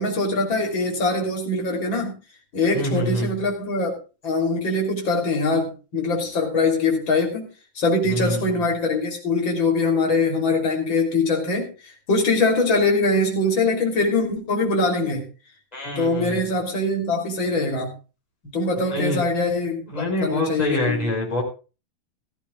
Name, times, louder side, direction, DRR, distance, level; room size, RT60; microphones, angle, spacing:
voice 1, 0.0-2.1 2.5-4.0 4.2-7.5 7.8-11.7 12.1-15.2 16.0-17.9 18.5-19.9 20.2-21.0, left 2 dB, 35° left, 1 dB, 3.8 m, -22 dB
voice 2, 2.7-3.3 8.1-8.6 15.7-16.4 18.8-19.2 19.9-21.4, left 1 dB, 10° left, -1 dB, 4.9 m, -26 dB
17.0 x 14.5 x 2.4 m, 0.33 s
omnidirectional pair, 3.9 m